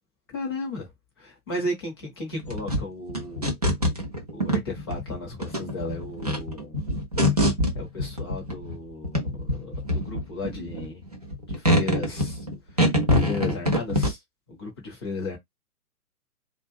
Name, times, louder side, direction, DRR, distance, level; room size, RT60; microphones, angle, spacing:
voice 1, 0.3-0.9 1.2-3.5 4.3-6.8 7.7-11.0 11.5-14.2 14.5-15.4, left 2 dB, 15° left, 0.6 m, -35 dB
sound 1, 2.4-8.8 9.0-14.1, equal, 30° right, 0.3 m, -25 dB
2.5 x 2.1 x 3.0 m
figure-of-eight pair, 130°, 46 cm